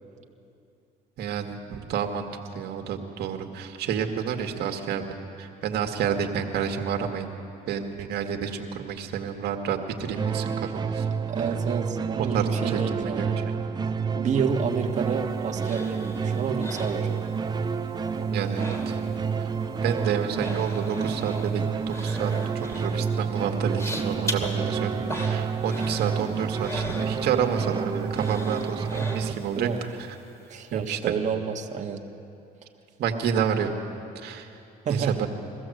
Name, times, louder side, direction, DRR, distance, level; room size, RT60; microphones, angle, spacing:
voice 1, 1.2-7.3 7.7-11.1 12.2-13.5 18.3-19.0 19.4-19.5 19.8-30.2 30.7-31.0 33.0-33.7 34.2-34.6 34.9-35.3, right 7 dB, 75° right, 4 dB, 1.8 m, -29 dB
sound 1, 10.1-29.3, right 6 dB, 25° right, 0.6 m, -29 dB
voice 2, 11.3-13.5 14.1-17.3 29.5-29.8 30.5-32.0 34.8-35.2, right 6 dB, 45° right, 3 dB, 1.6 m, -29 dB
sound 2, 14.6-17.7 18.0-19.3 19.6-27.7 28.1-29.6 30.0-30.1, left 1 dB, 15° left, 2.4 m, -39 dB
22.0 x 15.5 x 7.8 m, 2.7 s
cardioid pair, 110°, 17 cm